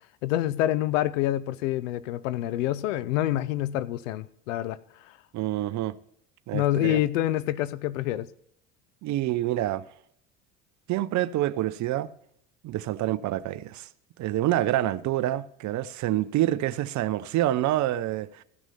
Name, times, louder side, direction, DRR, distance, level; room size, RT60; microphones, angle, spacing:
voice 1, 0.2-4.8 6.5-8.3, left 13 dB, 80° left, 0.7 m, -27 dB
voice 2, 5.3-6.0 6.5-7.0 9.0-9.9 10.9-12.1 12.6-13.9 14.2-18.4, right 14 dB, 50° right, 0.7 m, -27 dB
14.5 x 6.1 x 5.6 m
hypercardioid pair, 80°, 38 cm